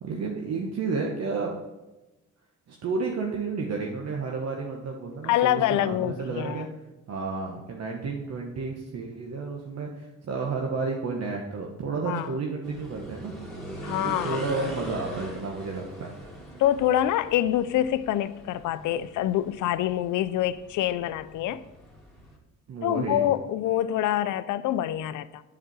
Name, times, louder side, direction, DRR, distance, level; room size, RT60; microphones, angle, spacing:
voice 1, 0.0-1.6 2.7-6.7 7.1-13.3 14.0-16.1 22.7-23.3, right 4 dB, 60° right, 1.3 m, -31 dB
voice 2, 5.2-6.6 12.1-12.3 13.8-14.4 16.6-21.6 22.8-25.4, left 12 dB, 80° left, 0.6 m, -26 dB
sound 1, 12.6-22.4, right 1 dB, ahead, 2.7 m, -42 dB
8.4 x 4.9 x 7.4 m
cardioid pair, 90°, 30 cm